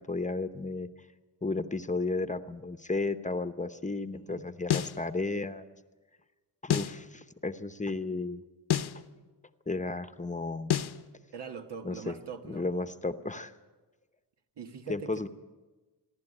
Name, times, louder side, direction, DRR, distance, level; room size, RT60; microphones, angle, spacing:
voice 1, 0.1-0.9 1.4-5.6 6.6-8.4 9.7-10.7 11.8-12.1 12.5-13.5 14.9-15.3, left 3 dB, 20° left, 11 dB, 0.8 m, -33 dB
voice 2, 4.1-4.4 11.3-12.7 14.6-15.2, right 5 dB, 85° right, 6 dB, 1.6 m, -42 dB
sound 1, 4.7-5.0 6.7-7.0 8.7-9.0 10.7-11.0, left 10 dB, 70° left, 0.9 m, -28 dB
27.0 x 11.5 x 9.9 m, 1.3 s
wide cardioid pair, 120°, 40 cm